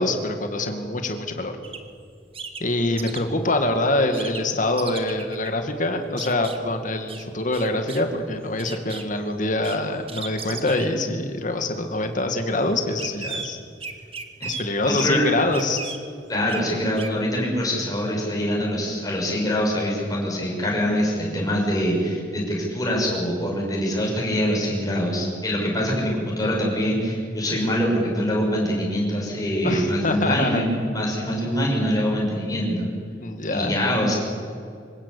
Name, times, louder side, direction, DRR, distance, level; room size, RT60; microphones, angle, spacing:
voice 1, 0.0-1.6 2.6-13.6 14.4-16.0 29.6-30.6 31.4-31.6 33.2-33.8, left 2 dB, 45° left, 6 dB, 2.2 m, -25 dB
sound 1, 1.6-1.8 2.3-3.2 4.1-4.4 4.8-5.5 6.2-6.6 7.1-7.2 7.5-8.1 8.4-9.0 9.6-9.8 10.1-11.2 11.9-12.2 13.0-13.5 13.8-14.7 15.0-15.1 15.5-16.0 16.5-16.7 17.0-17.1, right 5 dB, 30° right, 1.6 m, -35 dB
voice 2, 14.8-15.3 16.3-32.9 33.5-34.1, equal, 20° left, -2 dB, 6.5 m, -24 dB
25.5 x 16.5 x 8.5 m, 2.3 s
head